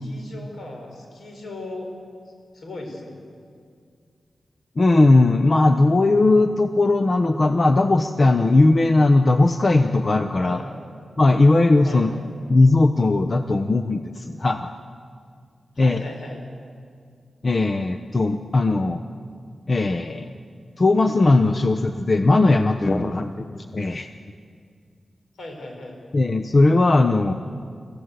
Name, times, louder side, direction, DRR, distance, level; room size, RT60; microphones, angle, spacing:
voice 1, 0.0-1.9 2.5-3.2 10.4-10.6 11.8-12.1 15.7-16.4 25.4-26.0, left 2 dB, 80° left, 2 dB, 5.1 m, -37 dB
voice 2, 4.8-10.6 11.2-12.1 12.5-14.7 15.8-16.0 17.4-19.0 19.7-20.3 20.8-24.1 26.1-27.3, left 2 dB, 40° left, 8 dB, 0.8 m, -18 dB
24.0 x 15.5 x 8.2 m, 2.2 s
cardioid pair, 75°, 0 cm